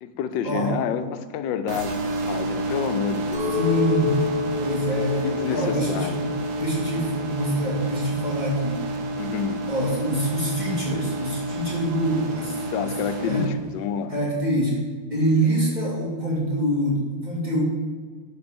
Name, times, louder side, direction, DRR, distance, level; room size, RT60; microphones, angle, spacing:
voice 1, 0.0-3.7 5.2-6.2 6.9-7.1 9.2-9.6 12.7-14.2, left 8 dB, 90° left, 11 dB, 1.3 m, -29 dB
sound 1, 1.7-13.5, right 2 dB, 65° right, 1.6 m, -29 dB
Chink clink, 3.3-8.5, left 7 dB, 5° right, 1.7 m, -30 dB
voice 2, 3.5-4.2 4.6-6.2 6.5-8.8 9.7-12.9 13.2-13.4 14.1-14.8 15.1-17.6, equal, 25° right, -6 dB, 2.9 m, -25 dB
11.0 x 4.9 x 5.2 m, 1.6 s
omnidirectional pair, 1.9 m